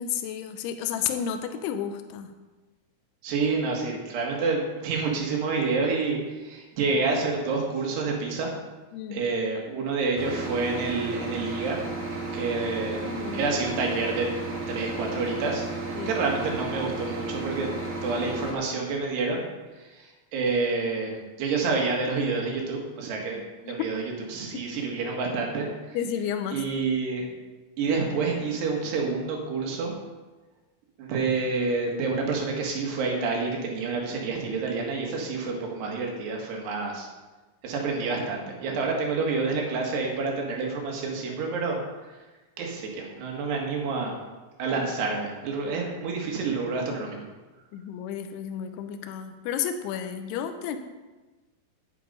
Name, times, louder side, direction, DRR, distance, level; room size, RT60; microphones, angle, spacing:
voice 1, 0.0-2.3 8.9-9.2 13.0-13.4 16.0-16.1 23.3-23.7 24.5-24.6 25.9-26.6 47.7-50.8, left 8 dB, 80° left, 7 dB, 2.8 m, -32 dB
voice 2, 3.2-8.5 9.1-11.8 12.3-13.1 13.3-14.3 14.7-17.7 18.0-19.4 19.8-23.4 23.7-26.0 26.5-27.3 27.8-29.9 31.0-37.1 37.6-42.1 42.6-44.2 44.6-47.2, right 4 dB, 80° right, 0 dB, 4.0 m, -28 dB
sound 1, 10.2-18.5, right 3 dB, 60° right, 0.8 m, -33 dB
10.5 x 9.2 x 5.2 m, 1.2 s
omnidirectional pair, 4.7 m